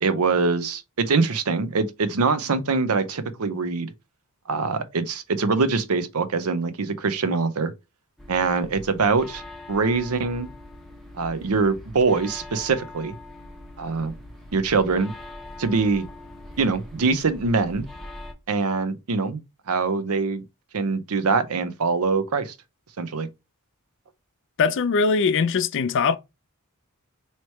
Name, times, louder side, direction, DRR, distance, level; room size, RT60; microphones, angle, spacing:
voice 1, 0.0-3.9 4.5-7.7 8.3-9.4 9.7-10.5 11.2-13.1 13.8-14.1 14.5-15.1 15.6-16.1 16.6-17.9 18.5-19.4 19.7-20.4 20.7-22.5 23.0-23.3, right 4 dB, 75° right, 0.6 m, -23 dB
sound 1, 8.2-18.3, left 2 dB, ahead, 0.9 m, -42 dB
voice 2, 24.6-26.2, left 5 dB, 60° left, 0.4 m, -21 dB
3.2 x 2.9 x 4.3 m
head